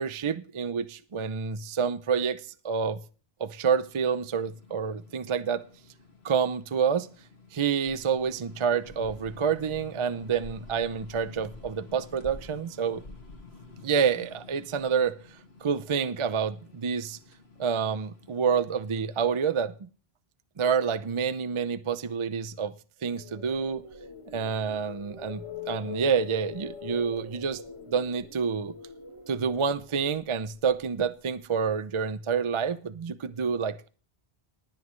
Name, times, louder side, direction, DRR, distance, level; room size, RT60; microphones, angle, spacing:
voice 1, 0.0-3.0 3.4-5.6 6.2-7.1 7.5-13.0 13.8-15.2 15.6-17.2 17.6-19.9 20.6-22.7 23.0-23.8 24.3-27.6 27.9-28.7 29.3-33.9, right 6 dB, 40° right, 0.5 m, -28 dB
sound 1, 3.8-19.0, left 3 dB, 80° left, 2.4 m, -50 dB
sound 2, 23.0-31.1, left 7 dB, 30° left, 1.2 m, -44 dB
19.0 x 9.5 x 3.1 m
omnidirectional pair, 1.1 m